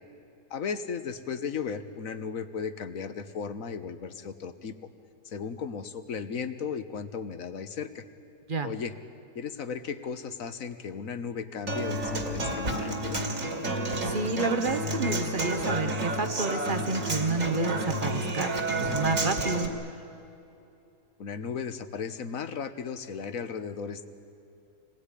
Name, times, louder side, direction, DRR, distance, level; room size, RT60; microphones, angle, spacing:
voice 1, 0.5-4.7 5.2-8.0 8.6-8.9 9.3-13.2 21.2-24.1, left 6 dB, 60° left, 10 dB, 1.5 m, -35 dB
Human voice / Acoustic guitar, 11.7-19.7, right 1 dB, 55° right, 2.8 m, -30 dB
voice 2, 14.0-18.5 18.8-19.7, right 3 dB, 35° right, 9 dB, 1.1 m, -30 dB
26.5 x 19.5 x 10.0 m, 2.8 s
omnidirectional pair, 1.7 m